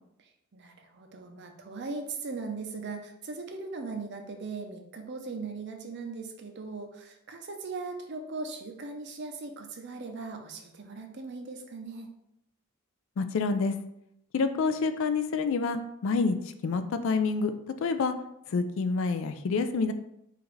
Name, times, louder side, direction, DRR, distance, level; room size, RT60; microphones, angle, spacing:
voice 1, 0.5-12.1, right 4 dB, 50° right, 4 dB, 0.6 m, -39 dB
voice 2, 13.2-13.8 14.3-16.4 16.6-17.5 17.8-18.1 18.5-19.9, left 4 dB, 60° left, 9 dB, 0.3 m, -27 dB
4.9 x 2.5 x 3.1 m, 0.79 s
head